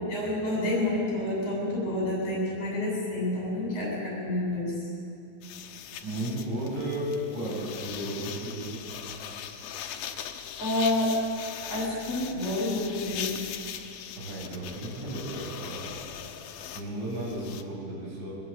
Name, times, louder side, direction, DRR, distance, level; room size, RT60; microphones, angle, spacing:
voice 1, 0.1-4.9 10.6-11.2 11.7-13.4, left 1 dB, 40° left, -4 dB, 8.9 m, -29 dB
sound 1, 5.4-17.6, left 9 dB, 70° left, 2.6 m, -40 dB
voice 2, 6.0-8.9 14.2-15.8 16.6-18.3, right 1 dB, 85° right, -5 dB, 10.0 m, -34 dB
22.5 x 21.5 x 8.8 m, 2.6 s
omnidirectional pair, 5.2 m